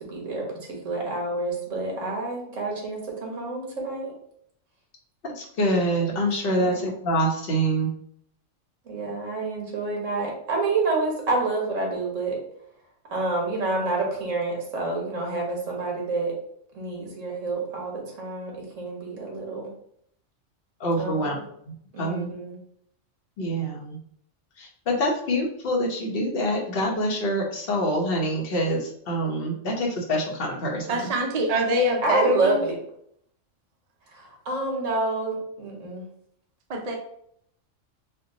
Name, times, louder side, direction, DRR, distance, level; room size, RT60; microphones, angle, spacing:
voice 1, 0.0-4.1 6.5-6.8 8.8-12.3 13.1-16.3 16.7-19.7 21.0-21.5 21.9-22.6 32.0-32.8 34.1-36.0, right 3 dB, 75° right, -1 dB, 1.6 m, -28 dB
voice 2, 5.2-7.9 20.8-21.4 22.0-22.3 23.4-24.0 24.9-31.1, equal, 50° left, 0 dB, 1.0 m, -25 dB
voice 3, 30.9-32.6 36.7-37.0, equal, 50° right, 2 dB, 0.4 m, -24 dB
4.5 x 2.2 x 3.8 m, 0.68 s
omnidirectional pair, 1.3 m